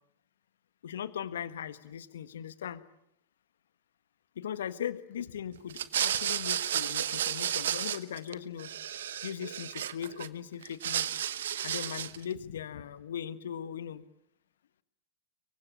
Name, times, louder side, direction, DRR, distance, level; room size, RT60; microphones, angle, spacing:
voice 1, 0.8-2.8 4.4-8.7 9.2-11.1 11.6-14.0, left 9 dB, 70° left, 14 dB, 1.4 m, -39 dB
sound 1, 5.7-8.3 8.6-10.3 10.6-12.2, right 10 dB, 65° right, 1.2 m, -32 dB
25.0 x 24.0 x 8.4 m, 0.74 s
figure-of-eight pair, 95°, 0 cm